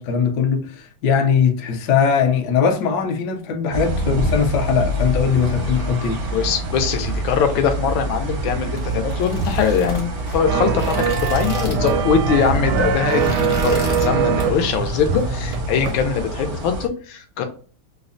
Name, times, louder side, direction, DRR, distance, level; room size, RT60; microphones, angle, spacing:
voice 1, 0.0-6.2, left 6 dB, 70° left, 1.0 m, -20 dB
sound 1, 3.7-16.9, right 1 dB, 65° right, 0.7 m, -26 dB
voice 2, 6.3-10.9 11.2-17.4, left 7 dB, 85° left, 1.4 m, -22 dB
sound 2, 8.7-12.1 12.4-12.6 12.9-14.1 14.4-14.7 15.1-16.0, left 2 dB, 35° left, 0.6 m, -32 dB
sound 3, 10.5-16.0 16.3-16.4, right 6 dB, 85° right, 1.4 m, -23 dB
4.8 x 2.0 x 2.5 m
omnidirectional pair, 2.2 m